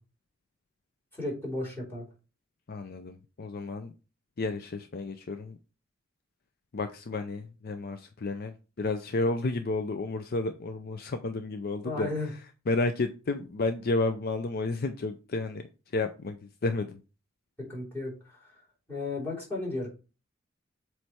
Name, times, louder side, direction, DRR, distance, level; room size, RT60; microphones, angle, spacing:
voice 1, 1.1-2.1 11.8-12.3 17.7-18.6 18.9-19.9, left 2 dB, 10° left, 3.4 m, -34 dB
voice 2, 2.7-3.9 4.4-5.6 6.7-12.1 12.7-15.6 15.9-17.0, left 3 dB, 50° left, 0.5 m, -31 dB
7.7 x 3.2 x 4.3 m
head